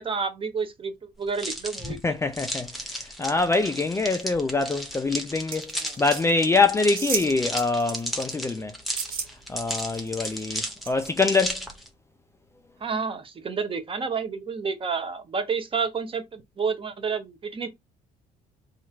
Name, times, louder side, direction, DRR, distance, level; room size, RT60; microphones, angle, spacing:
voice 1, 0.0-2.1 5.8-6.0 12.8-17.7, right 5 dB, 30° right, 0.7 m, -30 dB
sound 1, 1.3-11.9, equal, ahead, 0.9 m, -34 dB
voice 2, 2.0-2.7 3.2-5.7 6.0-8.7 9.5-11.6, left 3 dB, 15° left, 0.4 m, -24 dB
sound 2, 5.5-6.2 7.0-7.3 7.6-8.3 8.9-9.3 9.7-10.4 10.8-10.9, right 6 dB, 60° right, 1.0 m, -32 dB
2.9 x 2.4 x 4.3 m
cardioid pair, 110°, 17 cm